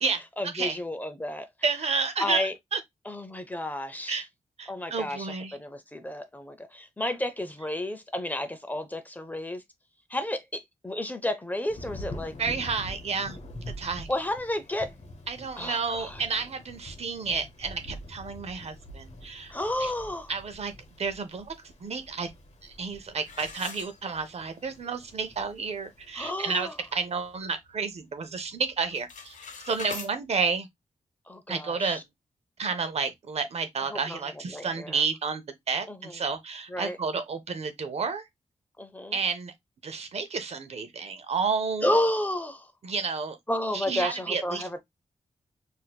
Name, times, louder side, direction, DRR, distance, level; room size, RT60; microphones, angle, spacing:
voice 1, 0.4-1.5 2.2-2.5 3.1-4.2 4.7-9.6 10.1-12.3 14.1-14.9 15.6-16.2 19.5-20.3 26.2-26.7 31.3-32.0 33.9-34.2 34.5-35.0 35.9-36.1 36.7-37.0 38.8-39.2 41.8-42.7 43.5-44.8, left 1 dB, 15° left, 0.5 m, -31 dB
voice 2, 1.6-2.8 4.1-4.3 4.6-5.6 12.4-13.4 13.8-14.1 15.3-19.9 20.3-20.7 21.0-21.5 21.8-22.3 22.6-29.3 29.7-30.7 31.5-32.0 32.6-38.2 39.1-39.5 39.8-41.9 42.8-43.4 43.7-44.8, right 5 dB, 60° right, 0.6 m, -31 dB
Thunder / Rain, 11.7-27.3, left 1 dB, 65° left, 1.0 m, -45 dB
sound 1, 23.2-24.5 25.0-25.1 25.6-25.7 26.1-26.4 26.9-28.0 28.2-28.6 28.8-30.1, left 4 dB, 90° left, 0.8 m, -42 dB
4.1 x 2.6 x 2.2 m
wide cardioid pair, 105°, 12 cm